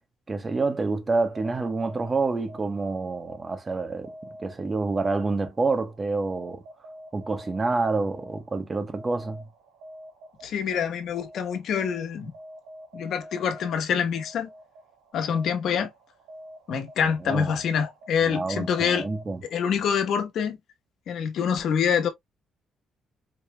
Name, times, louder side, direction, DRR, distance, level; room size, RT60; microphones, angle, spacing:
voice 1, 0.3-4.1 4.4-6.6 7.1-9.4 17.0-17.5 18.3-19.4, right 3 dB, 30° right, 1.1 m, -28 dB
sound 1, 1.2-19.7, equal, 90° right, 1.7 m, -47 dB
voice 2, 10.4-12.3 12.9-14.5 15.1-15.9 16.7-19.1 19.5-20.6 21.1-22.1, left 7 dB, 70° left, 1.2 m, -26 dB
4.9 x 3.3 x 2.2 m
cardioid pair, 90°, 0 cm